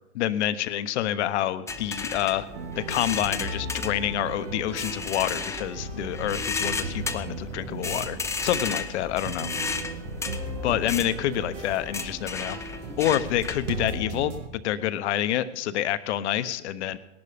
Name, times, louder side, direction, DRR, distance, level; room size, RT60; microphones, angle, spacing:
voice 1, 0.1-2.5 2.8-9.5 10.6-12.6 13.0-17.0, left 12 dB, 65° left, 13 dB, 1.0 m, -27 dB
sound 1, 1.7-13.9, left 4 dB, 10° left, 0.7 m, -34 dB
sound 2, 2.5-14.5, right 2 dB, 80° right, 1.9 m, -37 dB
18.0 x 11.5 x 5.1 m, 1.0 s
hypercardioid pair, 120°, 37 cm